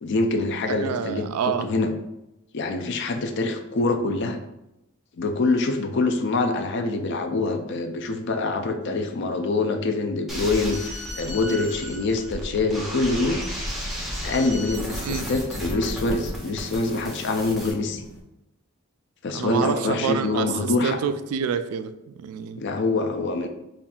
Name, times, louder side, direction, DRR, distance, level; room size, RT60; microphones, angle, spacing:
voice 1, 0.0-1.9 2.5-4.4 5.2-13.4 14.2-18.0 19.2-21.0 22.6-23.5, left 3 dB, 55° left, 7 dB, 0.4 m, -25 dB
voice 2, 0.7-1.7 15.0-15.3 19.3-21.9 22.2-22.6, right 7 dB, 85° right, 10 dB, 0.3 m, -27 dB
sound 1, 10.3-17.7, equal, ahead, 0.5 m, -33 dB
sound 2, 12.7-18.2, left 1 dB, 85° left, 0.7 m, -45 dB
5.5 x 2.5 x 2.3 m, 0.91 s
head